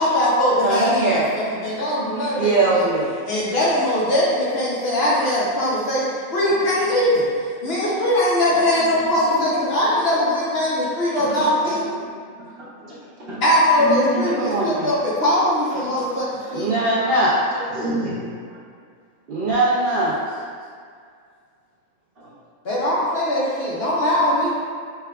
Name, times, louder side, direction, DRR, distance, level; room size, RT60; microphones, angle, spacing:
voice 1, 0.0-2.8 3.2-6.0 6.3-7.3 7.6-11.9 13.4-16.7 22.6-24.5, left 1 dB, 55° left, -7 dB, 0.7 m, -21 dB
voice 2, 0.6-1.2 2.4-3.1 6.5-6.6 14.4-14.9 16.5-17.3 19.3-20.1, right 2 dB, 75° right, -8 dB, 0.4 m, -20 dB
voice 3, 9.0-9.7 11.1-13.4 13.8-14.2 14.6-14.8 15.7-15.9 16.4-16.5 17.5-18.6 22.2-22.3, right 1 dB, 50° right, -8 dB, 0.8 m, -32 dB
5.5 x 2.2 x 2.2 m, 2.1 s
omnidirectional pair, 1.5 m